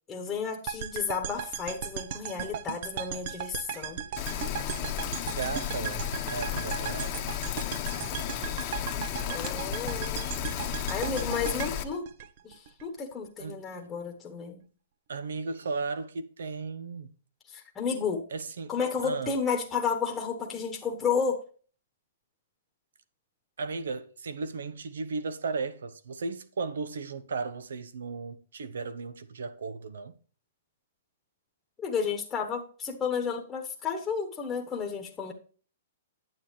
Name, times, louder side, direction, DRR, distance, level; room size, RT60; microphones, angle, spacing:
voice 1, 0.1-4.0 9.3-10.3 10.9-12.1 12.4-14.6 17.5-18.2 18.7-21.4 31.8-35.3, left 6 dB, 15° left, 1.2 m, -32 dB
sound 1, 0.7-12.8, right 9 dB, 50° right, 0.7 m, -37 dB
Rain, 4.2-11.8, left 10 dB, 35° left, 1.1 m, -33 dB
voice 2, 5.3-7.2 13.4-13.6 15.1-17.1 18.3-18.7 19.0-19.3 23.6-30.1, right 4 dB, 90° right, 1.1 m, -35 dB
9.4 x 7.6 x 3.2 m
hypercardioid pair, 150°, 0 cm